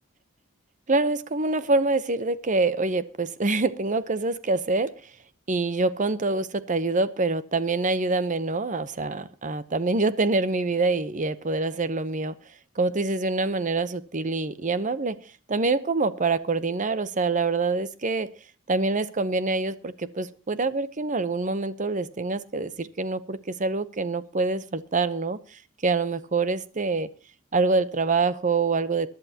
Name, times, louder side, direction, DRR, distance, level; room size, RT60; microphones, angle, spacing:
voice 1, 0.9-4.9 5.5-12.4 12.8-15.2 15.5-18.3 18.7-27.1 27.5-29.1, right 3 dB, 40° right, 15 dB, 0.8 m, -25 dB
22.5 x 11.5 x 2.9 m, 0.33 s
head